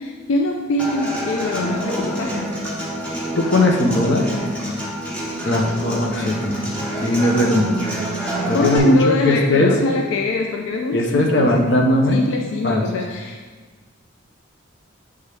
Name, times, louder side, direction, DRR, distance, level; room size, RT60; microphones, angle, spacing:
voice 1, 0.0-2.6 8.5-13.4, left 3 dB, 80° left, 2 dB, 0.4 m, -23 dB
Human voice / Acoustic guitar, 0.8-8.8, equal, 5° left, 0.9 m, -27 dB
voice 2, 3.4-4.3 5.5-7.9 8.5-9.7 10.9-12.2 12.6-12.8, left 1 dB, 60° left, 1 dB, 0.7 m, -19 dB
8.1 x 3.5 x 3.3 m, 1.4 s
head